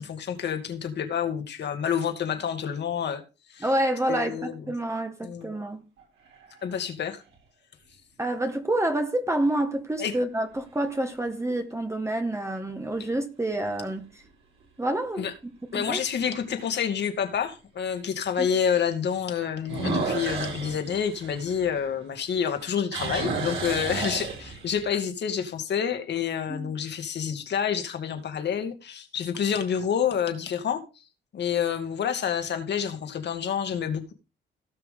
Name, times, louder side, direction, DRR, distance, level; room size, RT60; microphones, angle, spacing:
voice 1, 0.0-3.2 3.5-3.7 4.1-4.6 5.2-5.5 6.6-7.2 10.0-10.2 15.2-15.3 15.7-30.8 31.3-34.1, left 8 dB, 60° left, 2.4 m, -28 dB
voice 2, 3.6-5.8 8.2-14.1 14.8-16.0 18.4-18.5 26.5-26.7, right 1 dB, 15° right, 1.7 m, -28 dB
sound 1, 6.0-6.7 7.3-7.4 12.6-13.1 13.6-13.7 14.2-14.3 14.6-14.7 16.2-16.3 19.6-22.2 22.5-24.9, right 4 dB, 80° right, 6.5 m, -32 dB
17.5 x 5.9 x 3.8 m
cardioid pair, 90°, 20 cm